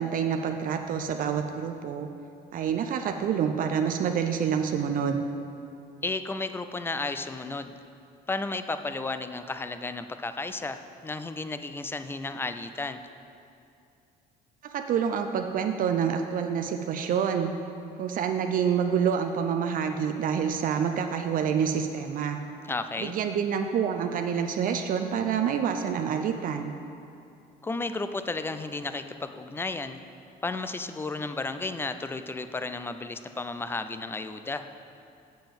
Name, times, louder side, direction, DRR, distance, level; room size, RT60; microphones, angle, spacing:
voice 1, 0.0-2.1 2.5-5.2 14.6-17.5 18.0-22.4 23.0-26.7, right 7 dB, 55° right, 6 dB, 0.5 m, -27 dB
voice 2, 6.0-7.7 8.3-13.0 22.7-23.1 27.6-30.0 30.4-34.7, left 3 dB, 15° left, 10 dB, 0.4 m, -33 dB
7.7 x 7.0 x 5.3 m, 2.6 s
cardioid pair, 110°, 17 cm